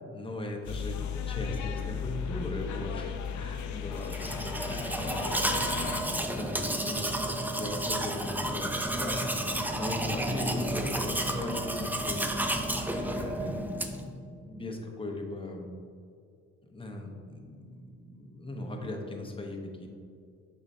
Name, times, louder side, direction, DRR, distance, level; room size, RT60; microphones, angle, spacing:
voice 1, 0.1-1.0 1.3-15.7 16.7-19.9, left 1 dB, 15° left, 1 dB, 0.9 m, -39 dB
sound 1, 0.6-6.0, left 7 dB, 75° left, 0.6 m, -35 dB
Domestic sounds home sounds, 4.0-14.1, right 1 dB, 5° right, 0.5 m, -31 dB
6.7 x 5.7 x 2.7 m, 2.3 s
cardioid pair, 90°, 30 cm